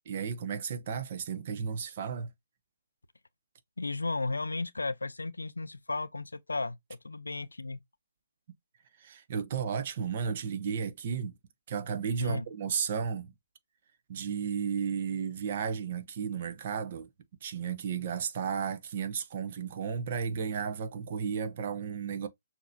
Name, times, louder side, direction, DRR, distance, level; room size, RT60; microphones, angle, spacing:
voice 1, 0.1-2.3 9.0-11.3 11.7-13.3 14.1-17.1 17.4-22.3, right 6 dB, 45° right, 0.9 m, -33 dB
voice 2, 3.8-7.8 12.2-12.4, left 3 dB, 85° left, 0.4 m, -34 dB
6.2 x 2.9 x 2.6 m
figure-of-eight pair, 140°, 0 cm